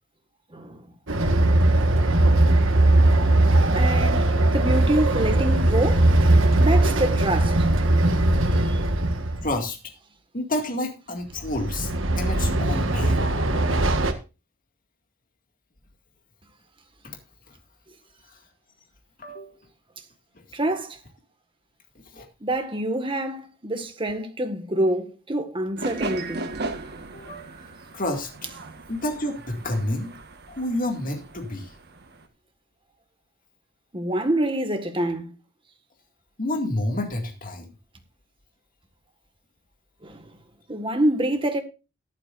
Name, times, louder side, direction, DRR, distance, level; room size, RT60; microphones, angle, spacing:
voice 1, 0.5-0.9 3.7-6.1 6.6-7.7 8.5-8.8 20.5-21.0 22.4-26.4 33.9-35.3 40.0-40.2 40.7-41.6, right 1 dB, 25° right, 1.7 m, -26 dB
Train, 1.1-9.6 11.4-14.1, right 1 dB, 70° right, 1.5 m, -20 dB
voice 2, 9.4-9.8 10.3-11.9 12.2-13.3 17.0-17.2 17.5-17.6 18.3-18.4 19.2-19.6 22.1-22.3 27.1-27.5 27.9-28.3 28.9-30.1 30.5-31.7 36.4-37.7, left 1 dB, 45° left, 2.2 m, -29 dB
sound 1, 25.8-32.3, right 2 dB, 55° right, 1.5 m, -37 dB
14.0 x 11.5 x 2.6 m
head